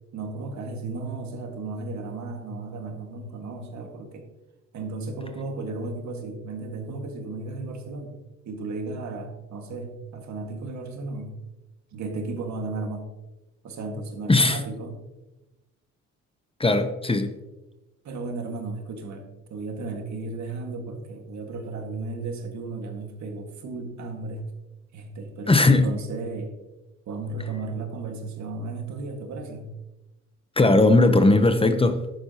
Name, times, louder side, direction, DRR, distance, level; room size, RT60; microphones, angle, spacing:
voice 1, 0.1-4.3 4.7-8.1 8.5-11.3 11.9-13.1 13.6-15.0 18.0-24.4 24.9-26.5 27.1-29.7, right 3 dB, 65° right, 1.9 m, -34 dB
voice 2, 14.3-14.6 16.6-17.3 25.5-25.9 30.6-32.0, left 2 dB, 20° left, 0.8 m, -18 dB
11.5 x 8.8 x 2.9 m
cardioid pair, 90°, 30 cm